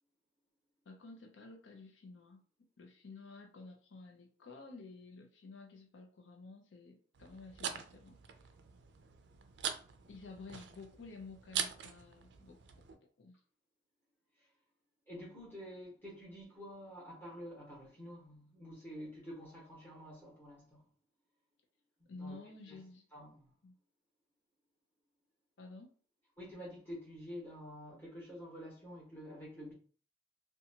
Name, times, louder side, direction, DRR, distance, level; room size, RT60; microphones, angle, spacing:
voice 1, 0.9-2.4 2.8-8.2 10.1-13.4 22.1-23.1 23.6-23.7 25.6-26.0, left 3 dB, 80° left, 0.5 m, -52 dB
sound 1, 7.1-13.0, right 8 dB, 65° right, 0.4 m, -43 dB
voice 2, 15.1-20.8 22.1-22.4 22.7-22.8 23.1-23.5 26.4-29.7, equal, 10° left, 1.2 m, -49 dB
2.7 x 2.3 x 2.7 m
head